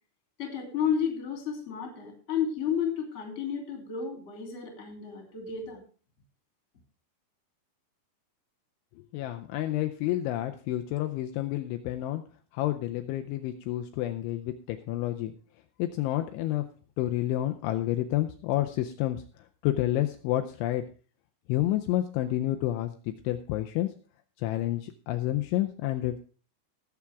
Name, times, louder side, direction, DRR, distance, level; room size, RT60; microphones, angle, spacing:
voice 1, 0.4-5.8, left 7 dB, 20° left, 3 dB, 2.1 m, -32 dB
voice 2, 9.1-12.2 12.5-15.3 15.8-16.7 17.0-19.2 19.6-20.8 21.5-23.9 24.4-26.2, left 14 dB, 80° left, 6 dB, 2.8 m, -29 dB
19.0 x 7.2 x 3.5 m, 0.38 s
omnidirectional pair, 5.8 m